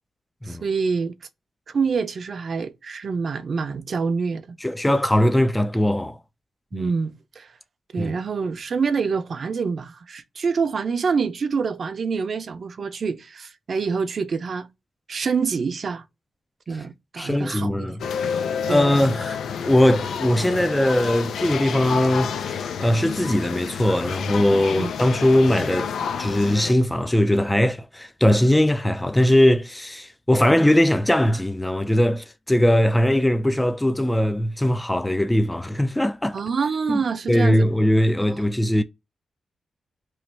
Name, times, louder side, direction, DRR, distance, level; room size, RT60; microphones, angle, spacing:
voice 1, 0.5-1.2 1.7-4.5 6.7-7.5 7.9-14.7 15.1-16.0 16.7-17.9 18.7-18.9 24.8-24.9 36.3-37.7 38.2-38.4, right 5 dB, 60° right, 0.5 m, -26 dB
voice 2, 4.6-6.2 6.7-6.9 8.0-8.1 17.2-18.0 18.7-36.4 36.9-37.0 37.3-38.8, left 1 dB, 10° left, 0.3 m, -20 dB
sound 1, 18.0-26.7, left 7 dB, 85° left, 0.4 m, -29 dB
3.1 x 2.3 x 4.2 m
cardioid pair, 65°, 0 cm